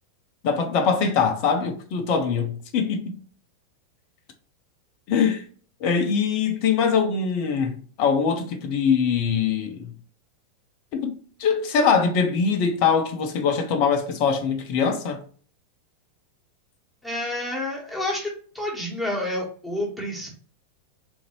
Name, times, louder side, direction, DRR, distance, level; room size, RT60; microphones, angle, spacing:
voice 1, 0.4-3.2 5.1-5.4 5.8-9.9 10.9-15.2, left 6 dB, 45° left, 0.5 m, -23 dB
voice 2, 17.0-18.3 18.5-20.3, left 1 dB, ahead, 1.2 m, -29 dB
3.7 x 2.6 x 2.9 m
figure-of-eight pair, 90°, 0 cm